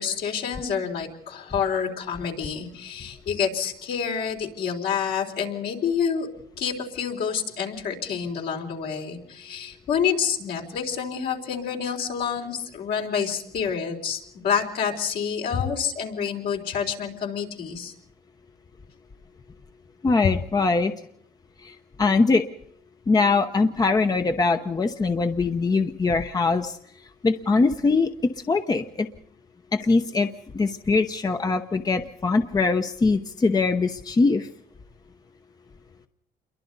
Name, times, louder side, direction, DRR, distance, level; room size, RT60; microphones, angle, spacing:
voice 1, 0.0-6.3 6.6-17.9, left 7 dB, 70° left, 1 dB, 4.0 m, -28 dB
voice 2, 20.0-20.9 21.6-21.7 22.0-22.4 23.1-26.8 27.2-28.1 28.5-29.1 29.7-30.3 30.5-34.5, left 3 dB, 20° left, 7 dB, 0.9 m, -22 dB
28.5 x 23.0 x 4.0 m, 0.68 s
cardioid pair, 110°, 17 cm